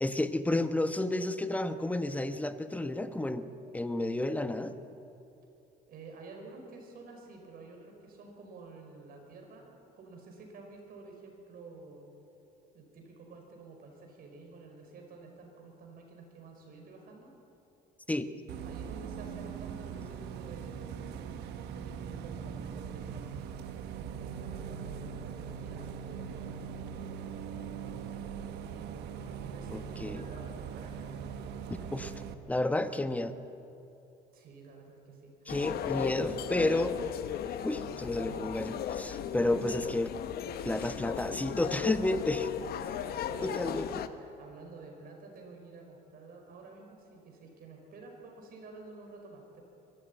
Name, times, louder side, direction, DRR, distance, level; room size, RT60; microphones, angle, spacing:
voice 1, 0.0-3.5 3.7-4.7 18.1-18.3 29.7-30.2 31.7-32.1 32.5-33.3 35.5-36.9 37.6-40.1 40.6-42.5 43.4-44.0, left 1 dB, 10° left, 10 dB, 1.1 m, -31 dB
voice 2, 5.9-12.1 12.7-17.3 18.6-21.0 21.7-23.8 24.4-26.6 29.4-31.3 34.3-35.6 37.8-38.5 39.2-39.6 43.3-43.8 44.2-49.6, right 3 dB, 60° right, 2 dB, 5.4 m, -50 dB
Bus, 18.5-32.3, right 7 dB, 80° right, 1.3 m, -41 dB
sound 1, 35.5-44.1, left 9 dB, 65° left, 1.0 m, -36 dB
23.5 x 13.5 x 8.9 m, 2.8 s
cardioid pair, 110°, 17 cm